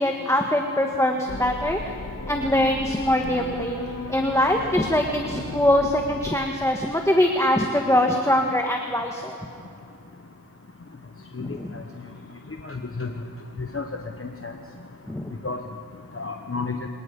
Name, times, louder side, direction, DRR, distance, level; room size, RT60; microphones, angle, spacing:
voice 1, 0.0-1.9 2.3-3.8 4.1-9.4 11.4-11.7 15.1-15.3, left 1 dB, 10° left, 2 dB, 1.6 m, -23 dB
sound 1, 1.3-6.3, left 2 dB, 60° left, 2.1 m, -35 dB
voice 2, 11.3-11.8 12.6-13.1 13.6-13.9 14.2-14.6 15.4-15.6 16.1-16.9, left 4 dB, 40° left, 4 dB, 1.2 m, -31 dB
25.5 x 19.5 x 5.4 m, 2.6 s
wide cardioid pair, 50°, 35 cm